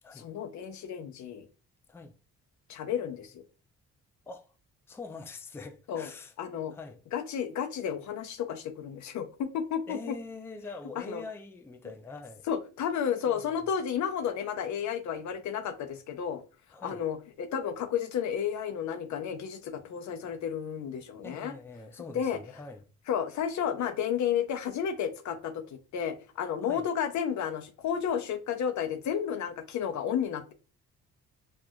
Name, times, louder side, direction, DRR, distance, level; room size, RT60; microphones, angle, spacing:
voice 1, 0.1-1.4 2.7-3.4 5.9-6.1 6.4-6.7 7.1-10.1 11.0-11.2 12.5-16.4 16.8-21.5 22.1-22.4 23.1-30.5, left 8 dB, 70° left, 0.7 m, -32 dB
voice 2, 4.9-6.3 6.7-7.0 9.9-12.4 13.3-13.6 16.7-17.0 21.2-22.8 26.6-26.9, left 3 dB, 10° left, 0.4 m, -44 dB
4.3 x 2.5 x 2.3 m
cardioid pair, 90°, 30 cm